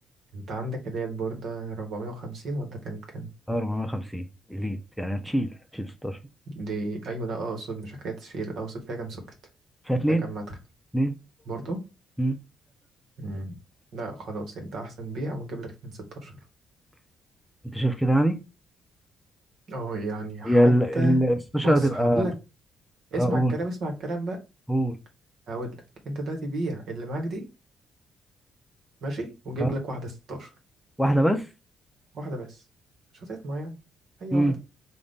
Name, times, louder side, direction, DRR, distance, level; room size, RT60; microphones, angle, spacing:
voice 1, 0.3-3.3 6.5-9.2 10.1-10.6 11.4-11.8 13.2-13.6 13.9-16.3 19.7-21.2 21.6-22.3 23.1-24.4 25.5-27.5 29.0-30.5 32.1-32.6 33.1-33.8 34.2-34.6, right 2 dB, 65° right, 1.3 m, -33 dB
voice 2, 3.5-4.2 4.5-6.2 9.9-10.2 10.9-11.1 12.2-12.4 17.7-18.4 20.5-22.2 23.1-23.5 24.7-25.0 29.6-29.7 31.0-31.4 34.3-34.5, right 1 dB, 5° left, 0.7 m, -23 dB
3.7 x 2.5 x 3.6 m
hypercardioid pair, 45°, 0 cm